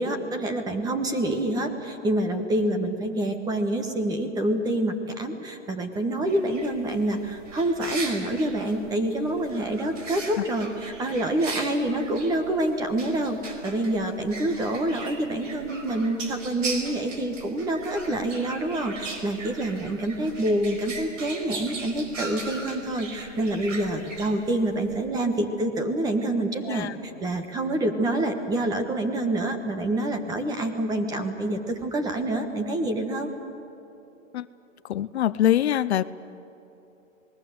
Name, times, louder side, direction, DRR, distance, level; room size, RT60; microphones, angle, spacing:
voice 1, 0.0-33.3, right 1 dB, 10° right, 6 dB, 1.3 m, -27 dB
sound 1, 6.3-25.0, right 3 dB, 80° right, 4.9 m, -39 dB
voice 2, 26.6-26.9 34.3-34.5 34.9-36.0, left 12 dB, 60° left, 15 dB, 0.7 m, -23 dB
27.0 x 20.5 x 7.9 m, 3.0 s
hypercardioid pair, 160°, 38 cm